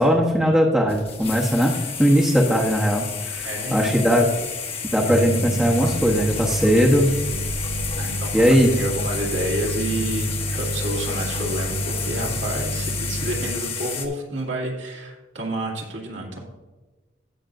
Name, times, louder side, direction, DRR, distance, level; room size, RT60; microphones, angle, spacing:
voice 1, 0.0-1.7 2.0-4.3 4.9-7.2 8.3-8.7, equal, 5° right, -3 dB, 0.9 m, -19 dB
sound 1, 0.9-14.1, left 6 dB, 30° left, 1.1 m, -31 dB
voice 2, 3.4-4.1 7.9-16.4, right 1 dB, 70° right, -2 dB, 2.2 m, -29 dB
sound 2, 5.0-13.4, right 2 dB, 80° left, 1.4 m, -29 dB
16.5 x 6.0 x 2.6 m, 1.2 s
head